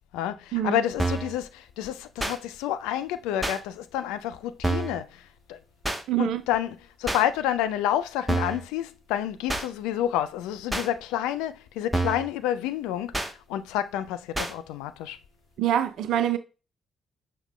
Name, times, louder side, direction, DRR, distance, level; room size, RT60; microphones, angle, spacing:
voice 1, 0.1-5.1 5.5-5.6 6.2-6.7 7.0-13.1 13.5-15.2, left 11 dB, 65° left, 0.3 m, -29 dB
sound 1, 1.0-1.3 2.2-2.4 3.4-3.6 4.6-5.0 5.8-6.0 7.1-7.2 8.3-8.6 9.5-9.7 10.7-10.9 11.9-12.3 13.1-13.3 14.3-14.5, right 2 dB, 5° right, 0.9 m, -27 dB
voice 2, 6.1-6.4 15.6-16.4, right 11 dB, 60° right, 0.3 m, -25 dB
6.2 x 2.1 x 3.7 m
figure-of-eight pair, 40°, 0 cm